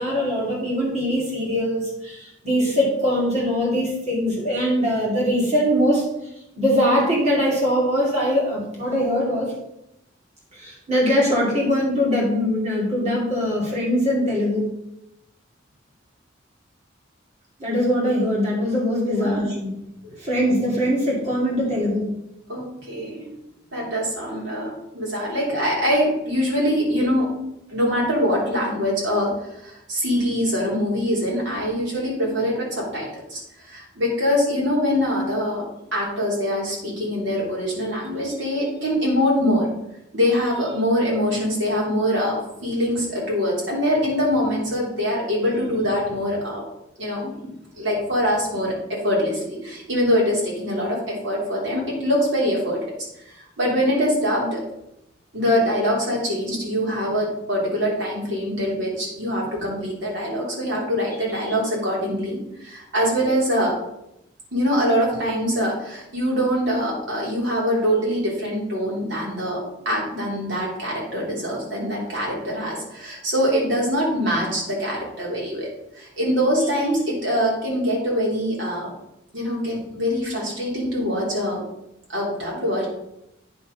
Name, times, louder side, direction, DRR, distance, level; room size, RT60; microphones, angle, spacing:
voice 1, 0.0-6.1 6.6-9.5 10.5-14.7 17.6-19.7 20.0-22.1 47.4-47.5, equal, 35° right, -5 dB, 2.6 m, -22 dB
voice 2, 22.5-23.2 23.7-27.3 27.7-35.7 35.9-39.7 40.1-46.6 47.0-47.3 47.8-52.9 53.2-54.6 55.3-63.8 64.5-75.7 75.9-78.9 79.3-81.6 82.1-82.9, equal, 65° right, -4 dB, 3.3 m, -23 dB
9.3 x 4.5 x 5.3 m, 0.84 s
head